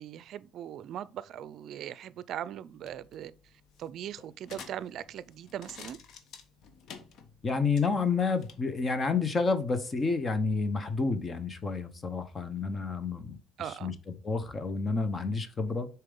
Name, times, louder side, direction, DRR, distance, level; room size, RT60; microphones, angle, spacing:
voice 1, 0.0-3.3 3.8-6.0 13.6-14.0, right 10 dB, 60° right, 0.4 m, -40 dB
sound 1, 2.7-8.6, left 6 dB, 65° left, 1.1 m, -51 dB
voice 2, 7.4-13.4 13.8-15.9, left 4 dB, 25° left, 0.8 m, -29 dB
6.7 x 4.5 x 3.8 m
cardioid pair, 120°, 0 cm